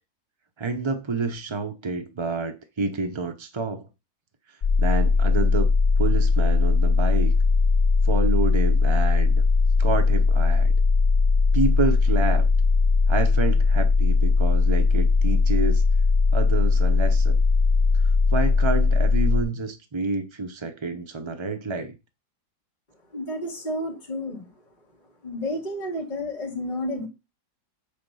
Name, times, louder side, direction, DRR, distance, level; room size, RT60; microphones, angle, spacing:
voice 1, 0.6-3.9 4.8-5.7 6.0-7.3 8.0-9.4 9.8-10.7 11.5-12.5 13.1-15.8 16.3-17.4 17.9-22.0, right 3 dB, 40° right, 0.4 m, -28 dB
sound 1, 4.6-19.4, left 4 dB, 85° left, 0.4 m, -19 dB
voice 2, 23.1-24.5 25.2-27.1, left 1 dB, 30° left, 2.3 m, -31 dB
8.7 x 3.9 x 5.5 m
omnidirectional pair, 1.7 m